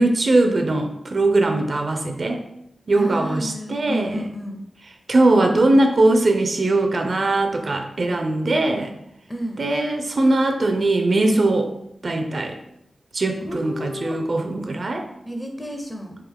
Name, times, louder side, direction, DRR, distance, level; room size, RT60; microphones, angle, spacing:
voice 1, 0.0-2.4 2.9-4.3 5.1-8.9 9.6-11.7 12.0-12.6 13.1-15.1, right 2 dB, 45° right, 4 dB, 0.4 m, -20 dB
voice 2, 2.9-4.6 9.3-9.7 13.4-14.2 15.2-16.2, equal, 10° left, 2 dB, 0.5 m, -31 dB
3.6 x 2.8 x 3.4 m, 0.79 s
wide cardioid pair, 125°, 0 cm